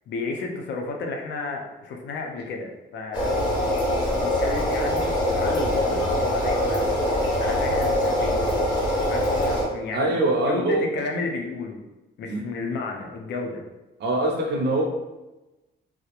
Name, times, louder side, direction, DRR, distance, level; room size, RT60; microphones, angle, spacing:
voice 1, 0.1-3.4 4.0-8.4 9.1-11.8 12.2-13.6, left 3 dB, 60° left, 2 dB, 0.4 m, -32 dB
sound 1, 3.1-9.6, left 1 dB, 20° left, 0.7 m, -23 dB
voice 2, 9.9-10.9 12.3-12.4 14.0-14.8, right 2 dB, 55° right, 1 dB, 0.5 m, -23 dB
2.3 x 2.0 x 2.8 m, 1.0 s
cardioid pair, 160°, 20 cm